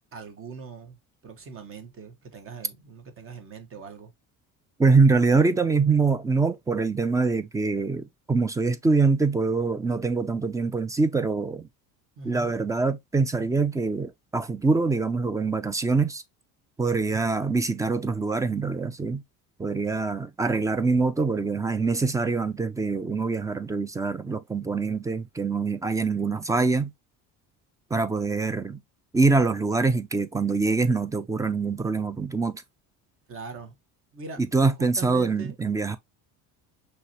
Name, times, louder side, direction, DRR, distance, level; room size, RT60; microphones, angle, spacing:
voice 1, 0.1-1.0 1.2-4.1 12.2-12.5 20.9-21.0 33.3-33.7 34.1-34.4 34.8-35.5, right 5 dB, 40° right, 1.2 m, -41 dB
voice 2, 4.8-11.7 12.2-16.2 16.8-19.2 19.6-26.9 27.9-28.8 29.1-32.6 34.4-36.0, right 4 dB, 10° right, 0.3 m, -24 dB
5.8 x 3.2 x 2.8 m
cardioid pair, 145°, 34 cm